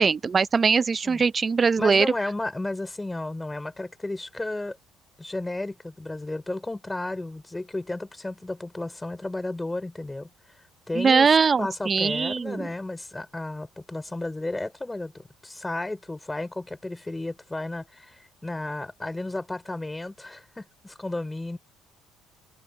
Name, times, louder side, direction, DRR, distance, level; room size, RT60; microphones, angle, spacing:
voice 1, 0.0-2.1 10.9-12.7, right 5 dB, 25° right, 0.6 m, -21 dB
voice 2, 1.8-4.8 5.2-10.3 10.9-11.3 11.6-21.6, left 2 dB, 10° left, 4.9 m, -33 dB
cardioid pair, 130°, 0 cm